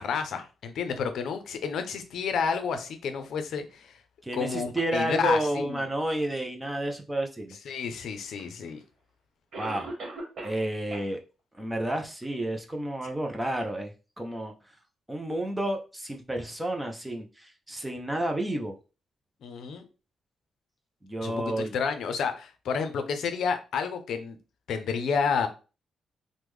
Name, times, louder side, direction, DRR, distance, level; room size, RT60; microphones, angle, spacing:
voice 1, 0.0-3.9 4.3-5.8 7.7-8.8 19.4-19.8 21.2-24.4 24.7-25.5, left 6 dB, 70° left, 0.5 m, -30 dB
voice 2, 4.2-7.6 9.6-9.9 10.4-11.2 11.6-14.5 15.1-18.7 21.0-21.8, right 1 dB, 10° right, 0.4 m, -31 dB
Cough, 8.4-8.5 9.5-10.7 10.9-11.0 11.6-11.7 12.2-12.3, right 2 dB, 50° right, 1.2 m, -38 dB
3.4 x 2.1 x 3.1 m
wide cardioid pair, 170°, 0 cm